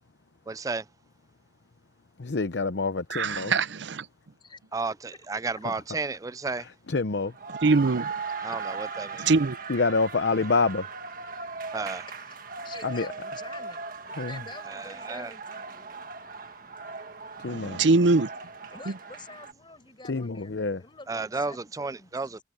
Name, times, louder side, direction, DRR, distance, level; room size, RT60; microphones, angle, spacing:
voice 1, 0.5-0.8 4.7-4.9 5.3-6.7 8.4-9.3 11.7-12.1 14.7-15.3 21.1-22.4, right 3 dB, 20° right, 0.4 m, -32 dB
voice 2, 2.2-3.5 5.6-5.7 6.5-7.3 9.1-9.3 9.7-10.9 12.8-13.1 14.1-14.4 17.4-17.8 20.0-20.8, left 3 dB, 75° left, 0.8 m, -27 dB
voice 3, 3.1-4.1 7.6-8.1 9.2-9.6 17.5-18.3 18.9-19.0, right 3 dB, 80° right, 0.7 m, -23 dB
sound 1, 7.2-19.5, right 4 dB, 50° right, 1.6 m, -39 dB
voice 4, 12.6-13.8 14.1-16.0 18.7-22.1, left 3 dB, 25° left, 6.6 m, -48 dB
head